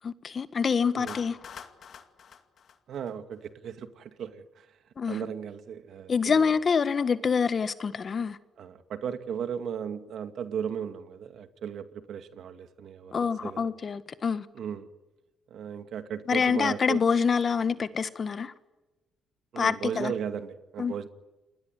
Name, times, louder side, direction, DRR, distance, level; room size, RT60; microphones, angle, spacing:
voice 1, 0.0-1.4 5.0-5.2 6.1-8.4 13.1-14.4 16.3-18.5 19.6-20.1 20.8-20.9, left 6 dB, 45° left, 1.6 m, -26 dB
Clapping, 1.1-3.5, left 7 dB, 60° left, 2.3 m, -45 dB
voice 2, 2.9-4.7 5.1-6.5 8.6-13.7 14.6-14.9 15.5-17.0 19.5-21.1, right 8 dB, 70° right, 2.1 m, -36 dB
29.0 x 20.5 x 9.7 m
cardioid pair, 90°, 0 cm